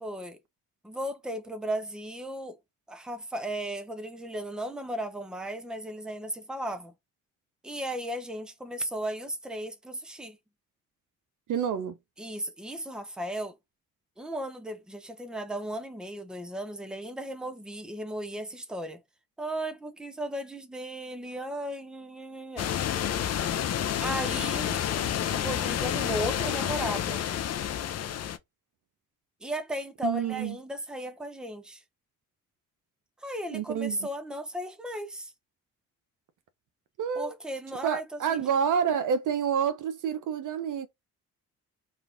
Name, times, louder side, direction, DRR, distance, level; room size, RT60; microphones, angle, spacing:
voice 1, 0.0-0.4 0.8-2.6 2.9-6.9 7.6-10.4 12.2-13.5 14.2-19.0 19.4-22.7 24.0-24.8 25.3-27.2 29.4-31.8 33.2-35.3 37.2-38.0 38.3-38.5, right 1 dB, ahead, 0.7 m, -35 dB
voice 2, 11.5-12.0 30.0-30.5 33.5-34.1 37.0-37.3 37.8-40.9, right 7 dB, 45° right, 0.6 m, -28 dB
sound 1, 22.6-28.4, left 10 dB, 40° left, 0.6 m, -29 dB
3.0 x 2.3 x 2.5 m
hypercardioid pair, 40°, 42 cm